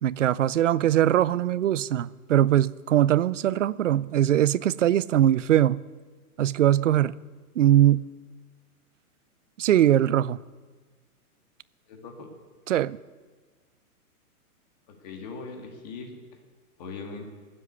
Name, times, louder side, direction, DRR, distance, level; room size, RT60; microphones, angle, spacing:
voice 1, 0.0-5.8 6.4-7.1 7.6-8.1 9.6-10.4 12.7-13.0, right 12 dB, 55° right, 0.5 m, -21 dB
voice 2, 11.9-12.3 14.9-16.2 16.8-17.2, left 4 dB, 25° left, 1.7 m, -40 dB
15.5 x 7.7 x 9.5 m
hypercardioid pair, 175°, 45 cm